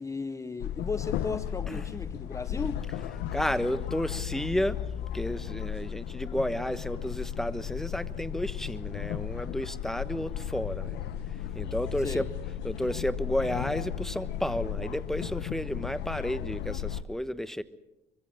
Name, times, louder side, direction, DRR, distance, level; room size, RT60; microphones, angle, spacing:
voice 1, 0.0-2.8 12.0-12.3, left 4 dB, 20° left, 0.7 m, -35 dB
sound 1, 0.6-17.0, left 9 dB, 85° left, 1.2 m, -35 dB
voice 2, 3.3-4.8 5.1-11.0 11.5-12.3 12.6-17.6, left 1 dB, ahead, 1.1 m, -32 dB
24.5 x 23.5 x 6.5 m
cardioid pair, 110°, 17 cm